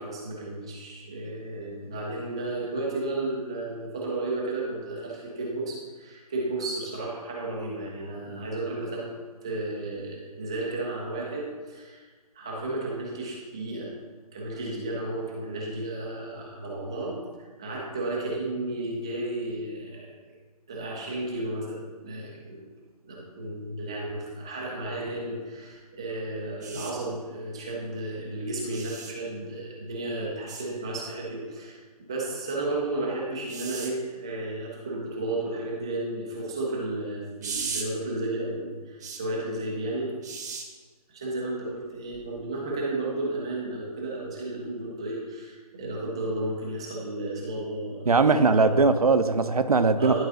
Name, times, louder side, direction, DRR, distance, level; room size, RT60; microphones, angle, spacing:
voice 1, 0.0-9.1 9.4-13.9 14.3-20.4 20.7-22.6 23.0-31.8 32.1-40.2 41.1-48.8 50.0-50.3, right 2 dB, 10° right, -4 dB, 0.3 m, -33 dB
sound 1, 26.6-26.9 28.7-29.1 30.5-30.6 33.5-33.9 37.4-37.9 39.0-39.2 40.2-40.6 42.1-42.3, right 5 dB, 30° right, 0.8 m, -36 dB
voice 2, 48.1-50.3, right 4 dB, 70° right, 10 dB, 0.6 m, -20 dB
10.5 x 3.8 x 3.9 m, 1.4 s
figure-of-eight pair, 145°, 20 cm